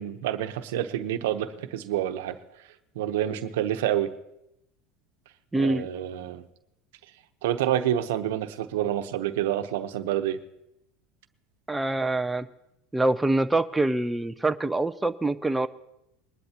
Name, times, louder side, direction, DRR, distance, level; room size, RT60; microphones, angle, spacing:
voice 1, 0.0-2.4 2.9-4.1 5.6-6.4 7.4-10.4, right 11 dB, 85° right, 8 dB, 0.9 m, -28 dB
voice 2, 5.5-5.9 11.7-12.5 12.9-15.7, right 2 dB, 10° right, 9 dB, 0.5 m, -25 dB
22.0 x 11.5 x 2.9 m, 0.85 s
supercardioid pair, 125°, 0 cm